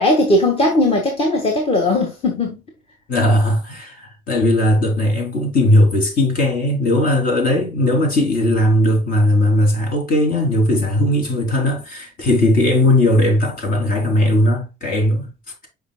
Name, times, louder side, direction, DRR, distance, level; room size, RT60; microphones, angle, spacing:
voice 1, 0.0-2.6, left 1 dB, 35° left, 1.8 m, -18 dB
voice 2, 3.1-15.3, left 1 dB, 55° left, 3.4 m, -17 dB
8.2 x 5.4 x 2.3 m
cardioid pair, 110°, 17 cm